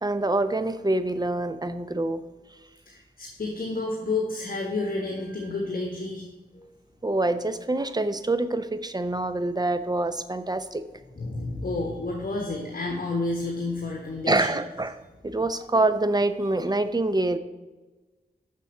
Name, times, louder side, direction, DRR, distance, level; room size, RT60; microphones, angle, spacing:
voice 1, 0.0-2.2 7.0-10.8 14.3-15.0 15.2-17.4, right 2 dB, 25° right, 11 dB, 0.6 m, -25 dB
voice 2, 2.9-6.3 6.5-6.7 11.1-14.6, left 2 dB, 60° left, 0 dB, 1.4 m, -30 dB
7.0 x 6.2 x 7.0 m, 1.2 s
wide cardioid pair, 75°, 17 cm